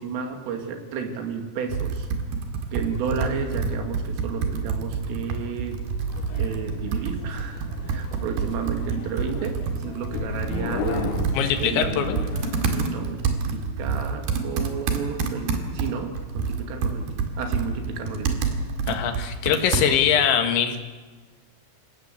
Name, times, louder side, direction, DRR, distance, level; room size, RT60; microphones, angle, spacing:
voice 1, 0.0-2.1 2.7-5.8 6.4-11.2 11.6-12.1 12.8-18.4, right 6 dB, 80° right, 5 dB, 4.9 m, -32 dB
Computer keyboard, 1.7-20.2, right 5 dB, 60° right, 3.5 m, -28 dB
sound 1, 6.1-12.9, left 7 dB, 85° left, 4.4 m, -35 dB
voice 2, 11.3-12.2 18.9-20.8, left 8 dB, 70° left, 6 dB, 3.8 m, -22 dB
28.0 x 17.5 x 8.1 m, 1.4 s
omnidirectional pair, 5.8 m